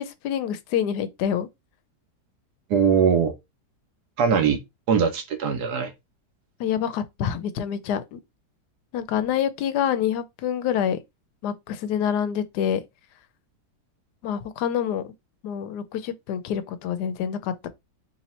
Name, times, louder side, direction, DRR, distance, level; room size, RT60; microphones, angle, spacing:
voice 1, 0.0-1.5 6.6-8.2 8.9-11.0 11.4-12.8 14.2-15.0 15.4-17.7, left 9 dB, 85° left, 1.2 m, -27 dB
voice 2, 2.7-3.3 4.2-4.6 4.9-5.9, right 6 dB, 75° right, 1.2 m, -21 dB
3.1 x 2.8 x 4.1 m
omnidirectional pair, 1.7 m